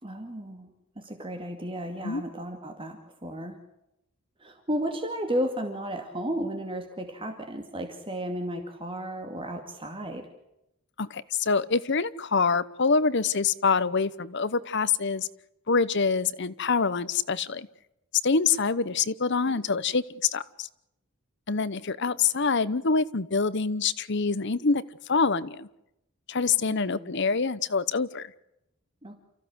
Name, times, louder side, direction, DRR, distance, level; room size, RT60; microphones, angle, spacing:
voice 1, 0.0-3.6 4.4-10.3 19.4-19.6 26.6-27.1 29.0-29.2, equal, 25° right, 4 dB, 2.4 m, -34 dB
voice 2, 11.0-15.3 15.7-17.7 18.2-20.7 21.5-24.8 25.1-25.7 26.3-28.3, left 4 dB, 55° left, 16 dB, 0.9 m, -25 dB
29.5 x 15.0 x 7.9 m, 0.85 s
head